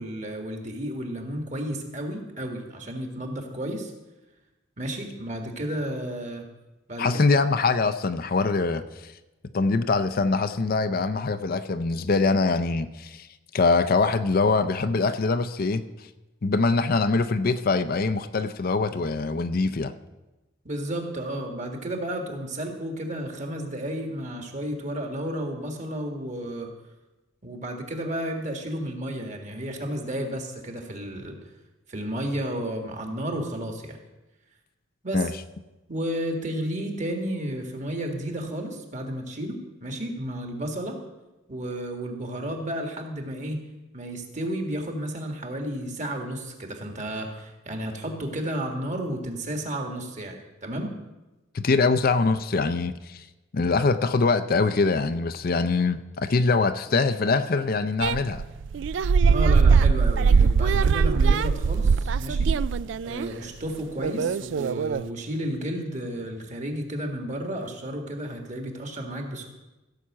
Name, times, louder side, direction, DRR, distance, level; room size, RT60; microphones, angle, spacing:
voice 1, 0.0-3.9 4.8-6.5 6.9-7.2 20.7-26.7 27.4-31.4 31.9-34.0 35.0-35.3 35.9-41.0 41.5-43.6 43.9-50.9 59.3-62.5 63.0-69.5, right 1 dB, 40° right, 3 dB, 1.8 m, -32 dB
voice 2, 7.0-8.8 9.5-13.3 13.5-15.8 16.4-19.9 35.1-35.3 51.5-53.2 53.5-58.4, left 3 dB, 50° left, 11 dB, 0.5 m, -23 dB
sound 1, 58.0-63.3 64.0-65.0, right 5 dB, 65° right, 0.3 m, -21 dB
15.5 x 5.7 x 7.4 m, 1.1 s
head